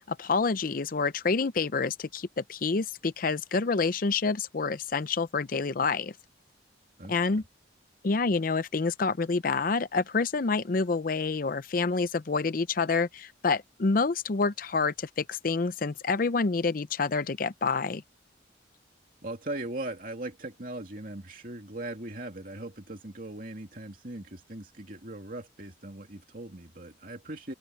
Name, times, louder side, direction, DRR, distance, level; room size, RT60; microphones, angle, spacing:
voice 1, 0.1-6.1 7.1-7.4 8.0-18.0, left 4 dB, 50° left, 0.5 m, -28 dB
voice 2, 7.0-7.4 19.2-27.5, right 1 dB, 50° right, 2.7 m, -39 dB
open air
head